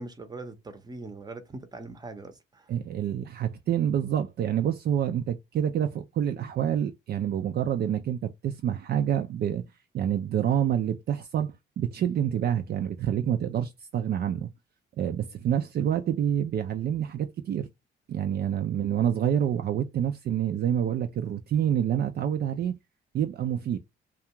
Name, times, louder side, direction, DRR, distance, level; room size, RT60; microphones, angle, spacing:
voice 1, 0.0-2.7, right 2 dB, 20° right, 0.7 m, -41 dB
voice 2, 2.7-9.6 9.9-14.5 15.0-17.7 18.1-22.7 23.1-23.8, right 9 dB, 55° right, 0.4 m, -27 dB
2.4 x 2.3 x 2.8 m
cardioid pair, 90°, 20 cm